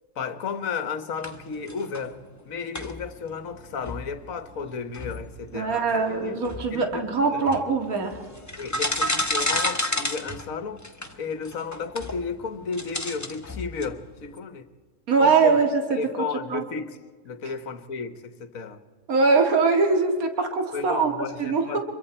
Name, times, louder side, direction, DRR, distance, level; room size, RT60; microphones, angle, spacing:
voice 1, 0.1-2.2 2.4-6.4 6.7-7.5 8.6-10.8 11.2-14.7 15.2-15.5 15.9-17.0 17.2-18.8 20.7-21.8, left 5 dB, 60° left, 11 dB, 1.5 m, -33 dB
sound 1, 1.2-2.4 2.7-14.4, left 1 dB, 10° left, 1.1 m, -32 dB
voice 2, 5.5-8.1 15.1-16.0 16.5-16.6 19.1-21.1 21.4-21.6, right 4 dB, 65° right, 4 dB, 2.4 m, -22 dB
26.0 x 23.0 x 4.3 m, 1.5 s
omnidirectional pair, 1.6 m